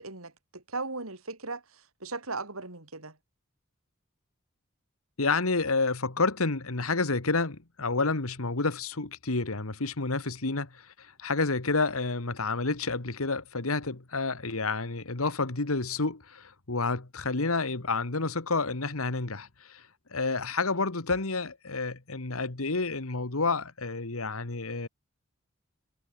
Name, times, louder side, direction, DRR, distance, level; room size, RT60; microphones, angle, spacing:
voice 1, 0.0-3.2, right 3 dB, 85° right, 4.8 m, -38 dB
voice 2, 5.2-19.8 20.1-24.9, left 3 dB, 85° left, 1.8 m, -29 dB
head